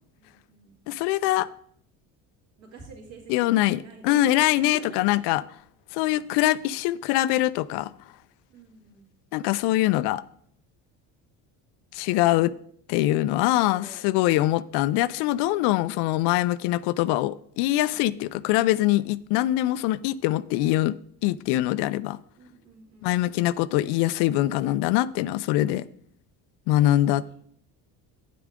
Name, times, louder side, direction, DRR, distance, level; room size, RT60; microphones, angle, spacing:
voice 1, 0.2-0.8 2.6-5.1 8.5-9.1 12.3-12.5 13.4-14.0 17.9-18.3 22.4-23.5 26.7-27.3, right 4 dB, 45° right, -8 dB, 2.7 m, -48 dB
voice 2, 0.9-1.5 3.3-5.4 5.9-7.9 9.3-10.2 11.9-12.5 12.9-20.9 21.2-22.2 23.0-25.9 26.7-27.4, left 15 dB, 90° left, 17 dB, 0.5 m, -23 dB
9.3 x 8.6 x 3.7 m, 0.64 s
cardioid pair, 130°, 39 cm